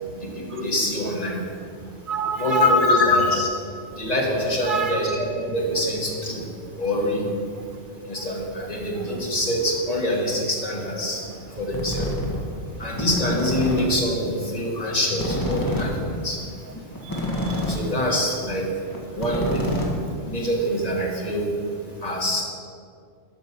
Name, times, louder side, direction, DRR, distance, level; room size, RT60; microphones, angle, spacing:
voice 1, 0.1-1.4 2.4-3.6 3.9-6.5 6.8-7.3 8.1-11.2 11.6-12.2 12.8-16.4 17.7-18.7 19.1-19.8 20.2-21.5 22.0-22.4, left 1 dB, 35° left, -2 dB, 1.8 m, -24 dB
voice 2, 2.1-2.7 4.7-5.1 17.0-17.5, right 6 dB, 50° right, 6 dB, 0.8 m, -28 dB
sound 1, 11.7-12.4 12.8-13.8 14.1-14.2 14.4-14.5 14.8-14.9 15.1-17.8 18.1-18.3 18.6-18.7 18.9-20.3, left 1 dB, 15° left, 1.6 m, -27 dB
13.0 x 5.3 x 6.0 m, 2.3 s
omnidirectional pair, 1.2 m